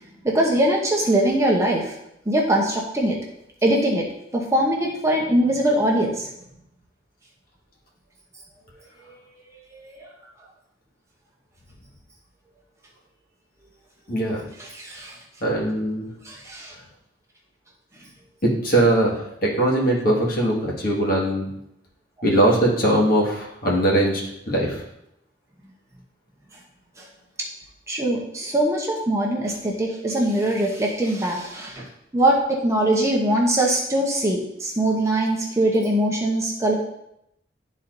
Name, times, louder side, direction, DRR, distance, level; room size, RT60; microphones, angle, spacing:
voice 1, 0.2-1.9 2.3-3.2 3.6-4.1 4.3-6.3 9.7-10.1 14.6-15.2 16.2-16.7 27.0-27.1 27.9-31.9 32.1-36.7, right 1 dB, 15° right, -2 dB, 0.8 m, -22 dB
voice 2, 14.1-14.4 15.4-16.1 18.4-19.2 19.4-21.5 22.2-24.2 24.5-24.8, right 1 dB, 50° left, -4 dB, 1.7 m, -20 dB
11.5 x 4.1 x 2.6 m, 0.82 s
head